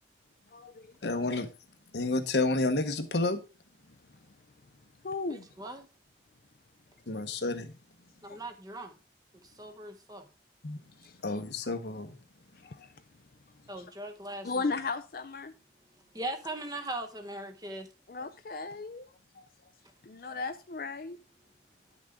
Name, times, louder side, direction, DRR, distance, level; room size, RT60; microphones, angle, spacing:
voice 1, 0.5-1.2 5.0-5.5 8.3-8.4 10.9-11.4 12.5-13.0 13.8-13.9 14.4-15.5 17.7-17.8 18.1-19.5 20.0-21.2, left 3 dB, 55° left, 0.5 m, -37 dB
voice 2, 1.0-1.5 1.9-3.4 7.1-7.7 10.6-10.8 11.2-12.2, left 2 dB, 75° left, 1.1 m, -30 dB
voice 3, 5.3-5.9 8.2-9.0 9.3-10.3 13.7-14.7 16.1-17.9, right 1 dB, 20° right, 0.9 m, -40 dB
10.0 x 6.2 x 3.7 m
head